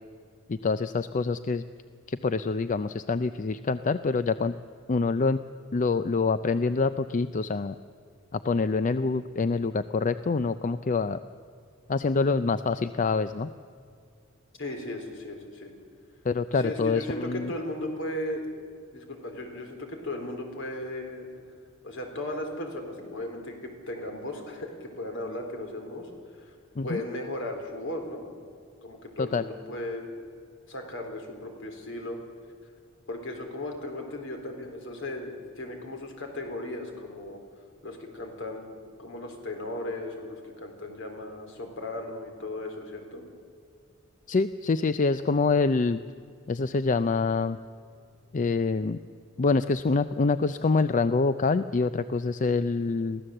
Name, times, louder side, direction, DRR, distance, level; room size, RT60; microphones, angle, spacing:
voice 1, 0.5-1.6 2.1-4.5 4.9-5.4 5.7-7.8 8.3-11.2 11.9-13.5 16.2-17.5 26.8-27.0 29.2-29.4 44.3-46.0 46.5-47.6 48.3-49.0 49.4-53.2, left 4 dB, 40° left, 12 dB, 0.4 m, -26 dB
voice 2, 14.6-15.7 16.5-18.5 18.9-21.3 21.8-26.1 26.8-28.3 28.8-30.0 30.7-32.2 33.1-37.4 37.8-43.2, left 1 dB, 65° left, 4 dB, 3.7 m, -36 dB
23.0 x 16.0 x 7.7 m, 2.2 s
head